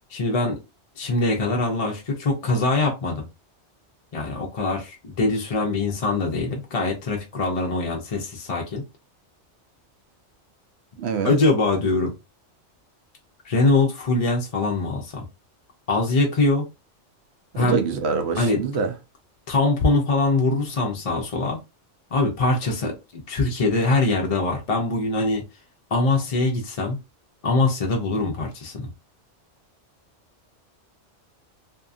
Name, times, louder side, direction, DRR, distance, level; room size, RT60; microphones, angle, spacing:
voice 1, 0.1-0.6 1.0-3.3 4.1-8.8 11.2-12.1 13.4-15.2 15.9-16.6 17.6-17.8 18.3-18.6 19.5-21.6 22.1-25.4 25.9-27.0 27.4-28.9, left 3 dB, 45° left, 0.5 m, -23 dB
voice 2, 11.0-11.4 17.5-18.9, right 5 dB, 70° right, 0.8 m, -25 dB
2.7 x 2.5 x 2.4 m
omnidirectional pair, 1.2 m